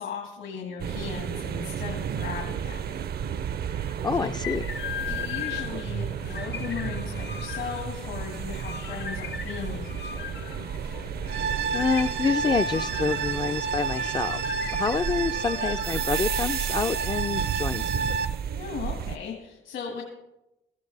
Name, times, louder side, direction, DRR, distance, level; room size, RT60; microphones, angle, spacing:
voice 1, 0.0-3.1 4.1-4.3 5.1-10.7 18.6-20.0, left 6 dB, 75° left, 0 dB, 2.1 m, -37 dB
sound 1, 0.8-19.2, right 8 dB, 50° right, 0.5 m, -33 dB
voice 2, 3.8-4.7 11.3-11.5 11.7-14.4 14.7-18.1, left 4 dB, 20° left, 7 dB, 0.3 m, -27 dB
sound 2, 4.1-17.5, left 7 dB, 60° left, 0.7 m, -39 dB
sound 3, 11.3-18.3, right 6 dB, 90° right, 0.7 m, -30 dB
16.0 x 15.0 x 3.3 m, 0.94 s
cardioid pair, 90°, 20 cm